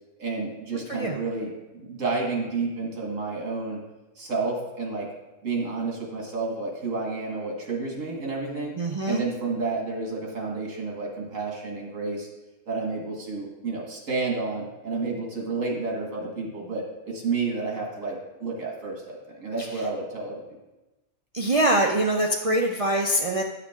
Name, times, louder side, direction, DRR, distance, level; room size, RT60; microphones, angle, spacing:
voice 1, 0.2-3.8 4.2-5.1 5.4-8.7 9.0-12.3 12.7-20.4, right 3 dB, 80° right, -1 dB, 2.1 m, -30 dB
voice 2, 8.8-9.2 19.6-19.8 21.3-23.4, right 1 dB, 60° right, 0 dB, 0.3 m, -24 dB
9.7 x 5.9 x 3.5 m, 1.1 s
omnidirectional pair, 1.3 m